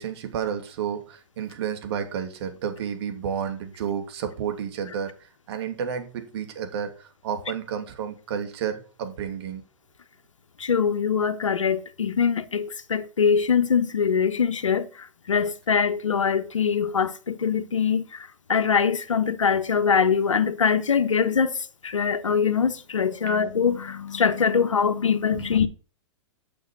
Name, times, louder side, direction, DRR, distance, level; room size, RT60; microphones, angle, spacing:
voice 1, 0.0-5.1 5.5-9.6 25.3-25.5, right 8 dB, 60° right, 2.7 m, -31 dB
voice 2, 10.6-14.9 15.3-18.0 18.5-21.5 21.9-25.7, left 6 dB, 85° left, 1.1 m, -23 dB
9.3 x 6.4 x 6.2 m
hypercardioid pair, 120°, 16 cm